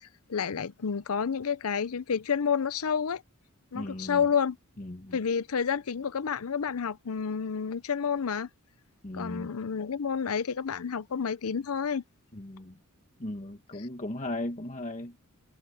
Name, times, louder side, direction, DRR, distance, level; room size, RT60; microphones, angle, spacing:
voice 1, 0.0-3.2 3.7-4.6 5.1-8.5 9.1-12.0, left 6 dB, 70° left, 0.6 m, -30 dB
voice 2, 3.7-4.2 4.8-5.2 9.0-9.5 12.3-12.7 13.2-15.3, left 1 dB, 35° left, 1.4 m, -37 dB
head